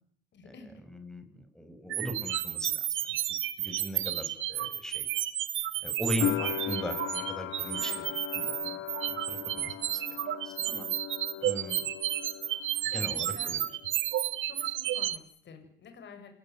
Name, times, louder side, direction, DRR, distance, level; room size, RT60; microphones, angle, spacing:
voice 1, 0.3-0.8 7.7-8.2 10.9-11.0 12.9-13.6 14.4-16.3, left 5 dB, 65° left, 6 dB, 7.2 m, -49 dB
voice 2, 0.9-2.7 3.6-5.1 5.8-7.9 8.3-8.8 9.1-10.0 10.4-10.9 11.4-11.8 12.8-13.6, equal, 5° left, 7 dB, 7.6 m, -38 dB
sound 1, 1.9-15.2, right 12 dB, 80° right, 1.9 m, -32 dB
sound 2, 6.2-13.0 13.3-14.1, left 13 dB, 90° left, 2.7 m, -38 dB
29.5 x 18.5 x 9.6 m, 0.63 s
cardioid pair, 90°, 20 cm